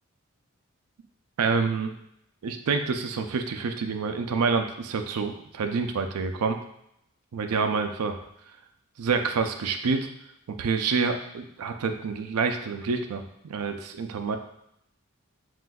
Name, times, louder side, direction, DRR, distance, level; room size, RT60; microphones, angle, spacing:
voice 1, 1.4-1.9 2.4-6.6 7.3-8.2 9.0-10.1 10.5-14.4, right 5 dB, 85° right, 6 dB, 0.4 m, -27 dB
7.4 x 2.5 x 2.3 m, 0.78 s
head